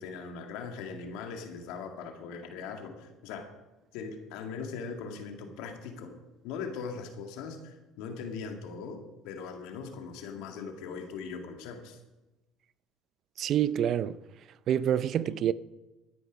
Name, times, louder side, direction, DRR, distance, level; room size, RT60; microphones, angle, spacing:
voice 1, 0.0-3.5 3.9-6.1 6.4-12.0, left 5 dB, 75° left, 2.0 m, -40 dB
voice 2, 13.4-14.2 14.7-15.5, right 10 dB, 55° right, 0.5 m, -27 dB
13.0 x 10.0 x 5.1 m
supercardioid pair, 80°, 0 cm